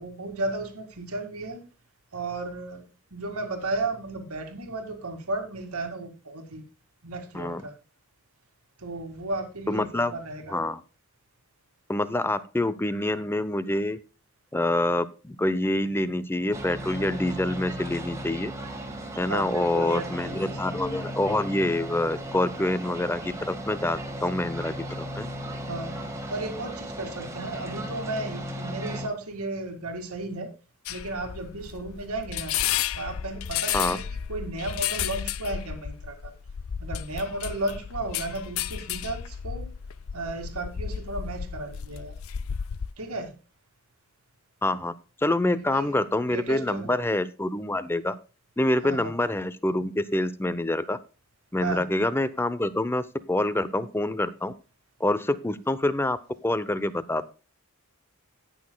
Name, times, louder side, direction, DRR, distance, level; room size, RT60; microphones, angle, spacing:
voice 1, 0.0-1.6 2.1-2.8 3.1-6.6 7.0-7.7 8.8-10.6 19.3-20.6 25.7-30.5 30.9-32.5 33.0-34.0 34.3-36.3 36.8-39.7 40.1-42.2 43.0-43.3 45.7-45.9 46.3-46.9 48.8-49.1 51.6-51.8, right 2 dB, 85° right, 5 dB, 2.0 m, -34 dB
voice 2, 9.7-10.1 10.5-10.8 11.9-14.0 14.5-18.5 19.2-25.3 33.7-34.0 44.6-44.9 45.2-48.1 48.6-51.0 51.5-54.5 55.0-57.3, left 1 dB, 10° left, 15 dB, 0.6 m, -26 dB
sound 1, 16.5-29.1, equal, 15° right, 1.6 m, -36 dB
sound 2, 30.9-42.9, left 9 dB, 65° left, 0.5 m, -33 dB
18.0 x 6.2 x 2.2 m, 0.33 s
head